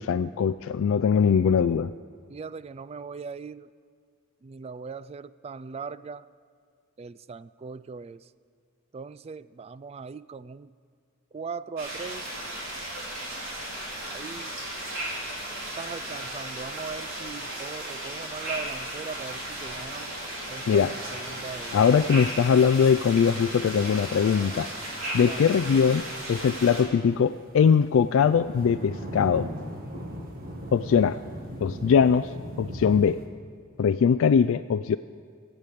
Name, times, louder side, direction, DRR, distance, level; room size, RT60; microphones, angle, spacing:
voice 1, 0.0-1.9 20.7-20.9 21.7-24.7 25.1-29.5 30.7-31.2 31.6-32.3 32.6-33.2 33.8-35.0, left 6 dB, 70° left, 11 dB, 0.3 m, -21 dB
voice 2, 2.3-3.7 4.4-6.2 7.0-8.2 8.9-10.7 11.3-12.3 14.0-14.6 15.5-20.1 20.5-21.8 25.1-25.5, right 5 dB, 30° right, 16 dB, 0.3 m, -39 dB
sound 1, 11.8-26.8, right 1 dB, 70° right, 4.6 m, -35 dB
sound 2, 19.2-33.3, equal, 45° right, 1.8 m, -42 dB
16.0 x 8.1 x 8.5 m, 2.2 s
head